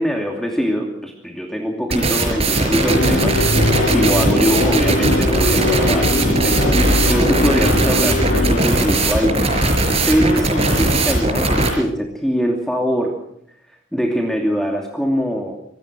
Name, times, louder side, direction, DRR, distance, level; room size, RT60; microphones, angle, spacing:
voice 1, 0.0-6.1 6.4-9.5 10.1-13.1 13.9-15.5, equal, ahead, 0 dB, 2.7 m, -22 dB
sound 1, 1.9-11.7, right 2 dB, 30° right, 5.3 m, -18 dB
sound 2, 2.9-8.6, left 1 dB, 65° left, 3.3 m, -21 dB
25.5 x 20.0 x 6.2 m, 0.72 s
head